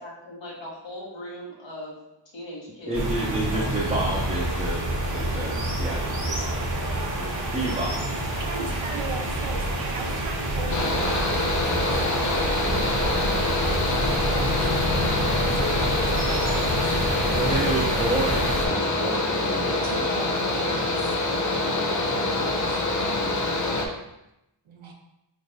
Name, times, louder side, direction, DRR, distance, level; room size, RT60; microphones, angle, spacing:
voice 1, 0.0-2.0 2.3-3.9, left 1 dB, 70° left, -3 dB, 1.2 m, -39 dB
voice 2, 2.9-4.9 5.1-6.6 7.4-8.0 17.3-20.1 20.7-20.9 22.6-22.8, right 2 dB, 15° right, -6 dB, 0.5 m, -30 dB
sound 1, 2.9-18.7, right 1 dB, 40° right, 0.9 m, -28 dB
voice 3, 8.4-17.5 17.9-18.9 19.8-21.2 21.5-21.9 22.1-22.8 24.7-24.9, right 4 dB, 85° right, 2 dB, 0.8 m, -40 dB
Mechanical fan, 10.7-23.9, left 2 dB, 40° left, 0.5 m, -25 dB
4.3 x 3.2 x 2.6 m, 0.88 s
wide cardioid pair, 140°, 46 cm